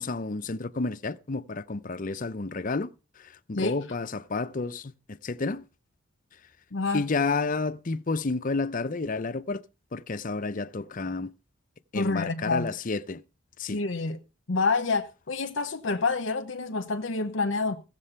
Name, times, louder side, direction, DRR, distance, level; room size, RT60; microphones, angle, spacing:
voice 1, 0.0-2.9 3.5-5.6 6.9-9.6 9.9-11.3 11.9-13.2 13.6-13.8, left 3 dB, 40° left, 0.6 m, -30 dB
voice 2, 6.7-7.0 11.9-12.7 13.6-14.2 14.5-17.8, left 3 dB, 70° left, 0.9 m, -28 dB
16.0 x 7.5 x 5.6 m
head